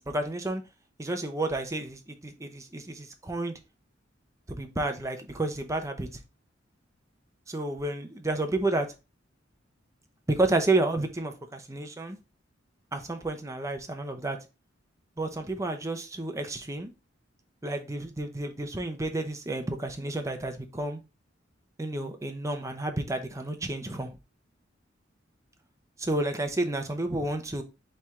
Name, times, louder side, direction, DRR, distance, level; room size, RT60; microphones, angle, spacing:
voice 1, 0.1-0.6 1.0-3.6 4.5-6.2 7.5-8.9 10.3-12.2 12.9-14.4 15.2-16.9 17.6-21.0 21.8-24.2 26.0-27.6, right 2 dB, 15° right, 0.6 m, -30 dB
4.4 x 3.2 x 3.6 m
head